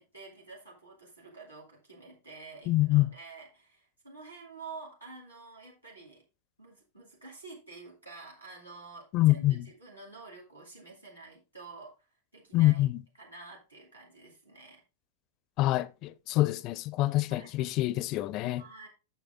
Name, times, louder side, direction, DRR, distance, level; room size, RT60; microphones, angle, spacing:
voice 1, 0.0-6.2 6.6-12.1 12.3-12.9 13.2-14.8 17.3-17.5 18.6-18.9, right 3 dB, 85° right, 2.5 m, -49 dB
voice 2, 2.7-3.1 9.1-9.6 12.5-13.0 15.6-18.6, left 17 dB, 40° left, 0.5 m, -26 dB
8.5 x 6.6 x 3.5 m
figure-of-eight pair, 90°, 0 cm